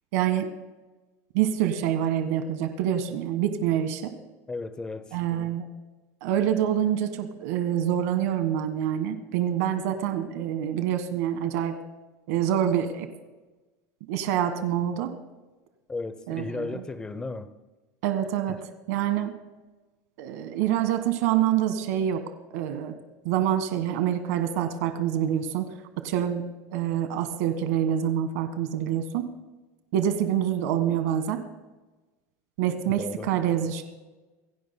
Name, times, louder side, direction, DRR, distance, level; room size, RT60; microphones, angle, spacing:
voice 1, 0.1-0.5 1.3-4.1 5.1-5.6 6.2-11.7 12.3-13.1 14.1-15.1 16.3-16.8 18.0-18.6 18.9-19.3 20.2-22.2 22.5-22.9 23.2-26.4 26.7-29.3 29.9-31.4 32.6-33.8, right 10 dB, 65° right, 1.5 m, -26 dB
voice 2, 4.5-5.2 15.9-17.5 18.5-18.6 32.9-33.3, left 3 dB, 10° left, 0.6 m, -35 dB
26.5 x 16.0 x 2.2 m
supercardioid pair, 175°, 9 cm